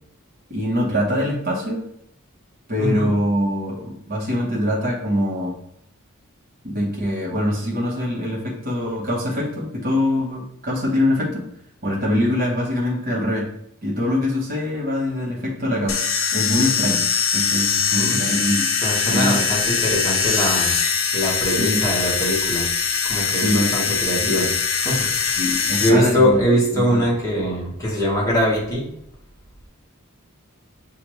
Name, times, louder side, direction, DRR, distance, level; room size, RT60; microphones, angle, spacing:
voice 1, 0.5-1.8 2.7-5.5 6.6-11.4 11.8-13.4 13.8-16.0 16.3-17.1 17.3-18.7 19.1-19.4 21.6-21.8 23.3-23.7 24.2-24.5 25.4-26.4 26.7-27.0, left 1 dB, 45° right, -4 dB, 1.0 m, -23 dB
voice 2, 2.8-3.1 17.7-18.2 18.8-20.7 21.1-22.7 23.0-24.5 24.8-28.9, equal, 15° left, -5 dB, 1.4 m, -22 dB
sound 1, 15.9-25.9, left 6 dB, 65° left, 0.6 m, -22 dB
6.6 x 2.5 x 3.1 m, 0.74 s
head